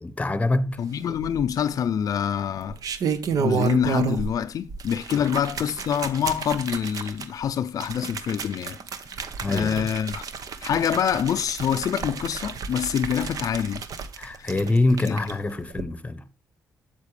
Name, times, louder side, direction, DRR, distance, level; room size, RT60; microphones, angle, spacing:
voice 1, 0.0-0.8 5.2-5.3 9.4-9.9 14.2-16.2, left 2 dB, 20° left, 0.9 m, -25 dB
voice 2, 0.8-2.8 3.4-8.8 9.4-10.2 10.6-13.8 14.4-14.5 15.0-15.2, left 8 dB, 60° left, 0.4 m, -26 dB
sound 1, 1.1-1.7 2.6-4.4 4.7-15.3 15.7-15.8, right 6 dB, 65° right, 0.9 m, -31 dB
8.2 x 7.4 x 3.2 m
cardioid pair, 80°, 7 cm